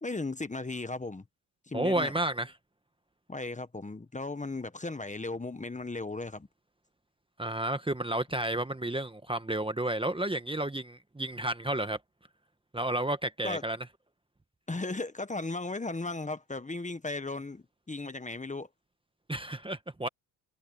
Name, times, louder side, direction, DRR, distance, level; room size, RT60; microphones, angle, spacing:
voice 1, 0.0-1.2 1.7-2.1 3.3-6.5 13.4-13.6 14.7-18.7, left 3 dB, 15° left, 1.5 m, -36 dB
voice 2, 1.7-2.5 7.4-12.0 12.7-13.8 19.3-20.1, right 1 dB, 10° right, 1.4 m, -31 dB
supercardioid pair, 80°, 48 cm